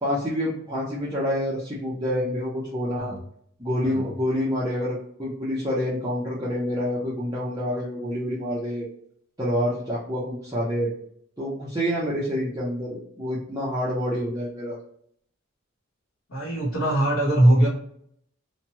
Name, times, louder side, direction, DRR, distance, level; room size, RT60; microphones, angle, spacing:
voice 1, 0.0-3.1 3.6-8.9 9.4-10.9 11.4-14.8, equal, 15° right, -8 dB, 0.6 m, -27 dB
voice 2, 16.3-17.7, right 1 dB, 70° left, -8 dB, 1.0 m, -21 dB
2.9 x 2.2 x 2.8 m, 0.65 s
head